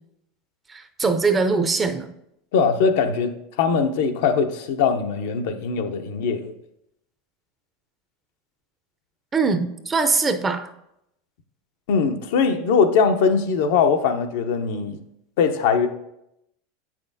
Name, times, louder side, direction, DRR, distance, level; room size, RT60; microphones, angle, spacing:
voice 1, 0.7-2.1 9.3-10.7, right 4 dB, 20° right, 0.6 m, -22 dB
voice 2, 2.5-6.5 11.9-15.0 15.4-15.9, left 5 dB, 70° left, 0.6 m, -21 dB
8.0 x 5.9 x 2.7 m
hypercardioid pair, 110°, 0 cm